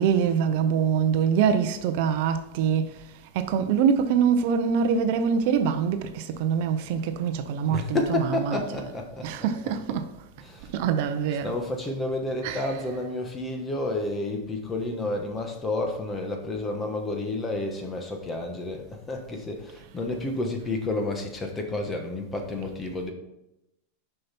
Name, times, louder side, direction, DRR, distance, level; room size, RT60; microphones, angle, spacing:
voice 1, 0.0-8.9 9.2-10.1 10.7-11.6 12.4-13.0, right 7 dB, 50° right, 0.6 m, -25 dB
voice 2, 7.7-10.0 10.4-10.7 11.3-23.1, left 2 dB, 15° left, 1.1 m, -30 dB
6.5 x 5.7 x 4.2 m
supercardioid pair, 160°, 0 cm